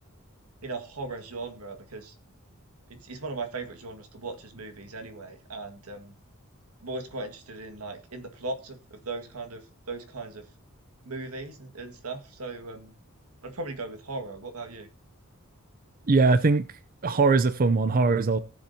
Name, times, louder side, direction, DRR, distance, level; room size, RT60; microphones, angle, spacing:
voice 1, 0.6-2.1 2.9-6.1 6.8-10.5 11.0-12.9 13.4-14.9, right 3 dB, 90° right, 1.9 m, -38 dB
voice 2, 16.1-16.7 17.0-18.4, right 3 dB, 40° right, 0.6 m, -21 dB
18.5 x 7.2 x 2.8 m
head